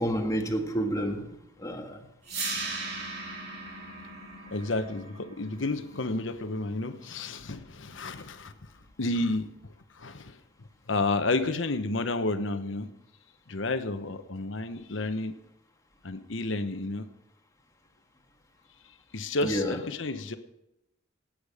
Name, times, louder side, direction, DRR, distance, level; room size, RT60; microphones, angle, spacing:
voice 1, 0.0-2.0 19.4-19.8, equal, 20° left, 1.7 m, -30 dB
sound 1, 2.2-8.3, right 3 dB, 55° right, 3.4 m, -39 dB
voice 2, 4.5-8.5 9.0-9.5 9.9-10.4 10.9-12.9 13.5-15.3 16.0-17.0 19.1-20.4, left 2 dB, 90° left, 1.0 m, -31 dB
16.5 x 9.0 x 5.0 m
head